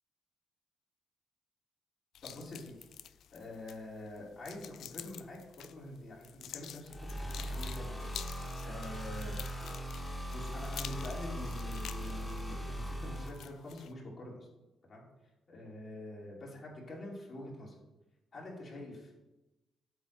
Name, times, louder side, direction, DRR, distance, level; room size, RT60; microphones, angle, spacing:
sound 1, 2.1-13.9, left 10 dB, 70° left, 0.3 m, -49 dB
voice 1, 2.2-2.9 3.3-9.3 10.3-14.5 14.9-15.0 15.5-17.7 18.3-19.1, left 1 dB, 45° left, -4 dB, 2.6 m, -45 dB
sound 2, 6.8-13.3, equal, 10° left, 1.7 m, -39 dB
8.2 x 3.6 x 6.7 m, 1.0 s
cardioid pair, 90°, 0 cm